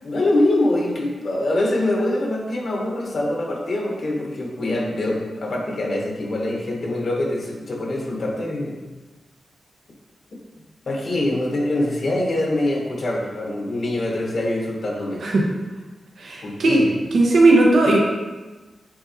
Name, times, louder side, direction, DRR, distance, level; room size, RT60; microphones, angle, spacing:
voice 1, 0.0-8.8 10.9-15.2 16.4-16.9, left 1 dB, 50° left, -1 dB, 1.2 m, -24 dB
voice 2, 16.2-16.8 17.1-18.0, right 2 dB, 70° right, -2 dB, 1.2 m, -16 dB
8.7 x 4.1 x 2.9 m, 1.2 s
wide cardioid pair, 145°, 0 cm